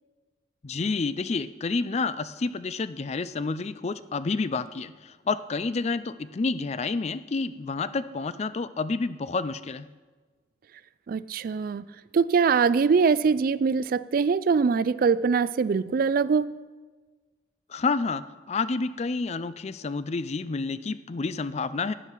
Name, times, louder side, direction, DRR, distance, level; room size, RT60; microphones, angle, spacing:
voice 1, 0.6-9.9 17.7-21.9, left 4 dB, 35° left, 0.4 m, -29 dB
voice 2, 11.1-11.8 12.1-16.6, right 5 dB, 50° right, 0.3 m, -23 dB
12.0 x 10.0 x 4.6 m
head